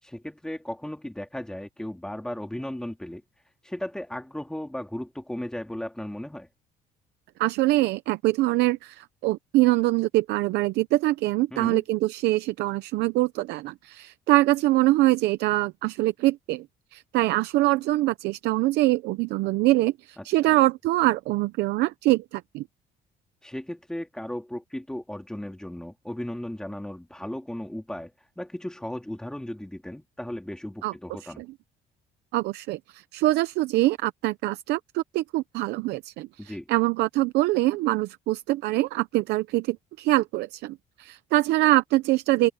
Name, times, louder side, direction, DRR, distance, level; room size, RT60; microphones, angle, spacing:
voice 1, 0.0-3.2 3.6-6.5 11.5-11.8 20.2-20.6 23.4-31.4 36.4-36.7, left 1 dB, 5° left, 2.3 m, -36 dB
voice 2, 7.4-16.7 16.9-22.6 30.8-30.9 31.4-31.5 32.3-42.5, right 18 dB, 85° right, 0.7 m, -24 dB
open air
cardioid pair, 110°, 17 cm